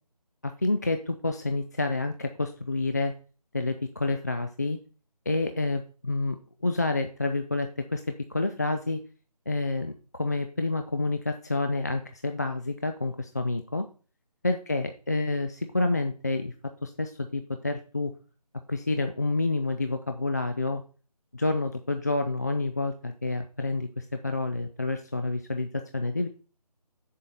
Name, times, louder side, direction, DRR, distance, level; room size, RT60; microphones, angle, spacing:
voice 1, 0.4-3.1 3.5-4.8 5.3-6.4 6.6-9.0 9.5-13.9 14.4-16.5 16.8-18.1 18.7-20.8 21.3-26.3, left 2 dB, 25° left, 6 dB, 0.4 m, -28 dB
7.5 x 7.4 x 4.0 m, 0.37 s
figure-of-eight pair, 160°, 21 cm